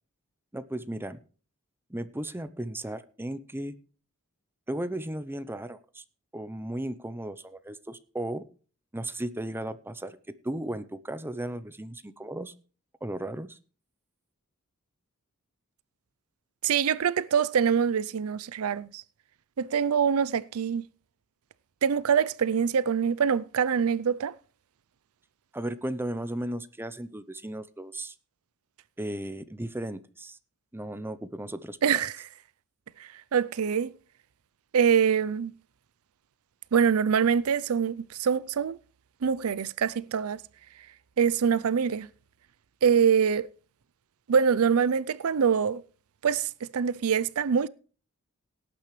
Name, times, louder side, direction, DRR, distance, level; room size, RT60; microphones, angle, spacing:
voice 1, 0.5-1.2 1.9-3.8 4.7-6.0 6.3-8.4 8.9-10.2 10.4-12.5 13.0-13.6 25.5-28.1 29.0-30.4 30.7-32.0, right 1 dB, 10° right, 0.7 m, -35 dB
voice 2, 16.6-19.0 19.6-20.8 21.8-24.3 31.8-32.1 33.0-33.9 34.7-35.5 36.7-38.8 39.2-40.4 41.2-42.1 42.8-43.5 44.3-45.8 46.2-47.7, right 7 dB, 70° right, 0.5 m, -24 dB
18.0 x 8.9 x 3.2 m
head